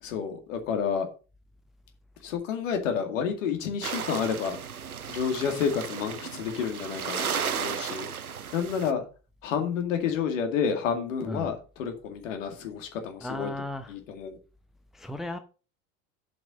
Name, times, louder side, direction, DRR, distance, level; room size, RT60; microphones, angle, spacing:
voice 1, 0.0-1.1 2.2-4.6 5.1-8.1 8.5-9.1 9.4-13.5 13.9-14.4, left 7 dB, 60° left, 2.3 m, -30 dB
sound 1, 3.8-8.9, right 7 dB, 90° right, 0.6 m, -34 dB
voice 2, 13.2-13.9 14.9-15.4, left 1 dB, ahead, 0.7 m, -35 dB
7.5 x 5.5 x 6.5 m
figure-of-eight pair, 75°, 43 cm